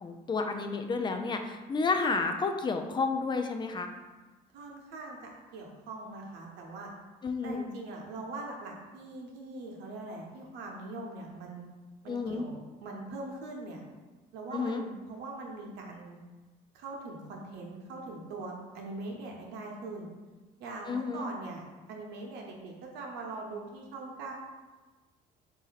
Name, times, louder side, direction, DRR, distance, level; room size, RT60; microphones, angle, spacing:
voice 1, 0.0-3.9 7.2-7.7 12.1-12.5 14.5-14.8 20.9-21.3, left 4 dB, 25° left, 6 dB, 0.4 m, -31 dB
voice 2, 4.5-6.9 7.4-11.6 12.0-13.8 14.3-16.2 16.7-20.1 20.6-21.6 21.9-24.3, right 2 dB, 90° right, 0 dB, 0.8 m, -42 dB
4.0 x 2.7 x 4.0 m, 1.2 s
cardioid pair, 110°, 17 cm